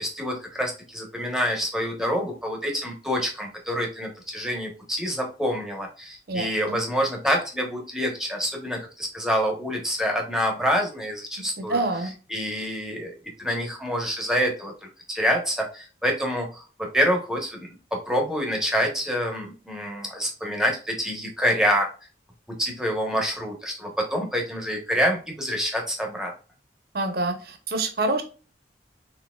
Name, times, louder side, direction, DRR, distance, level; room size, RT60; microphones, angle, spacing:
voice 1, 0.0-11.8 12.3-14.7 15.1-21.9 22.6-26.3, equal, 5° right, 1 dB, 1.1 m, -27 dB
voice 2, 6.3-6.8 11.6-12.1 26.9-28.2, right 2 dB, 60° right, 6 dB, 0.9 m, -27 dB
6.0 x 2.9 x 2.4 m, 0.35 s
head